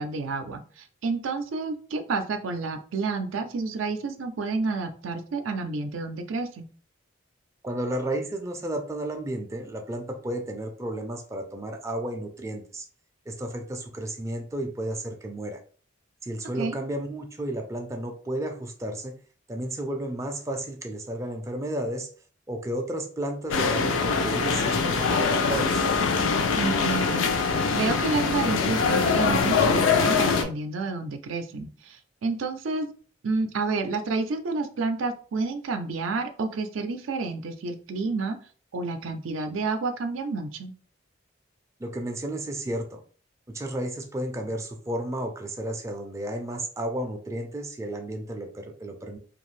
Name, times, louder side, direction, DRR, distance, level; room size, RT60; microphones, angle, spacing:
voice 1, 0.0-6.7 16.6-16.8 26.6-32.9 33.2-38.4 38.7-40.7, right 3 dB, 85° right, 6 dB, 0.4 m, -30 dB
voice 2, 7.6-12.8 13.3-15.6 16.2-19.1 19.5-22.1 22.5-25.9 41.8-43.0 43.5-49.2, right 1 dB, 15° right, 3 dB, 0.3 m, -32 dB
sound 1, 23.5-30.4, left 5 dB, 85° left, 0.5 m, -23 dB
2.6 x 2.4 x 3.1 m, 0.43 s
head